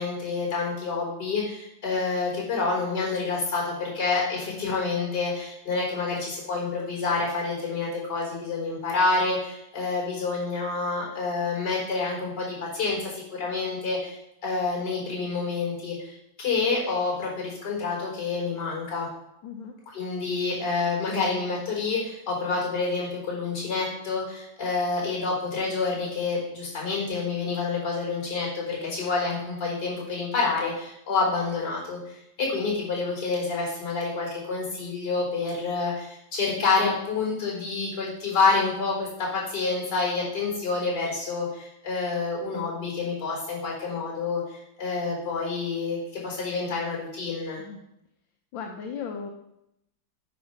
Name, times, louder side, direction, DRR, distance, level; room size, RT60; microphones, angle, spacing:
voice 1, 0.0-19.1 19.9-47.6, left 4 dB, 55° left, -3 dB, 4.8 m, -28 dB
voice 2, 19.4-19.7 47.6-47.8 48.5-49.3, left 6 dB, 75° left, 3 dB, 1.6 m, -36 dB
9.3 x 5.2 x 5.8 m, 0.82 s
omnidirectional pair, 2.1 m